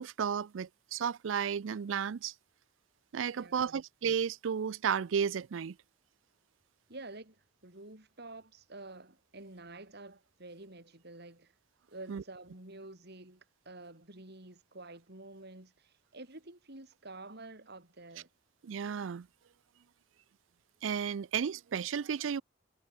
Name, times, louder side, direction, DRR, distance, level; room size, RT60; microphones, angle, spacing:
voice 1, 0.0-2.3 3.1-5.8 12.1-12.2 18.6-19.3 20.8-22.4, right 7 dB, 80° right, 0.4 m, -33 dB
voice 2, 3.3-3.8 6.9-11.5 11.9-18.3, right 2 dB, 60° right, 4.9 m, -49 dB
head